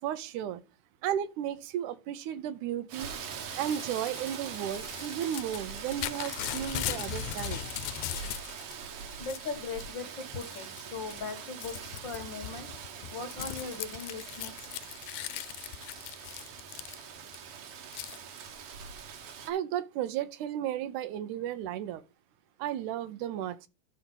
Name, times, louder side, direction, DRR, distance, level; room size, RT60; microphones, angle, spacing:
voice 1, 0.0-0.6 1.0-3.2 3.5-7.6 19.5-22.0 22.6-23.7, right 10 dB, 85° right, 2.2 m, -34 dB
Rain, 2.9-19.5, right 7 dB, 60° right, 1.7 m, -43 dB
Crumpling crinkling / Tearing, 3.5-8.7 9.1-9.9 10.4-10.8 11.1-17.4 17.9-18.2, left 14 dB, 80° left, 1.8 m, -39 dB
voice 2, 9.2-12.7 13.1-14.7, left 4 dB, 45° left, 1.8 m, -39 dB
11.5 x 4.2 x 5.4 m
omnidirectional pair, 3.5 m